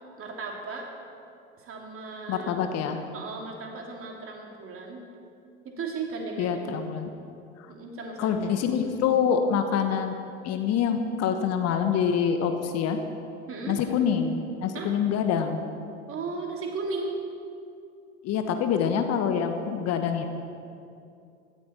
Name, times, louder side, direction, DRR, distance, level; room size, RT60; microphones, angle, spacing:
voice 1, 0.2-0.9 1.6-2.6 3.1-5.0 5.6-6.7 7.7-8.6 13.5-13.8 14.7-14.9 16.1-17.1, right 4 dB, 35° right, 0 dB, 3.0 m, -36 dB
voice 2, 2.3-3.0 6.4-7.1 8.2-10.1 10.4-13.0 13.7-15.6 18.2-20.3, left 7 dB, 45° left, 6 dB, 1.3 m, -26 dB
16.5 x 13.5 x 4.4 m, 2.5 s
figure-of-eight pair, 75°, 36 cm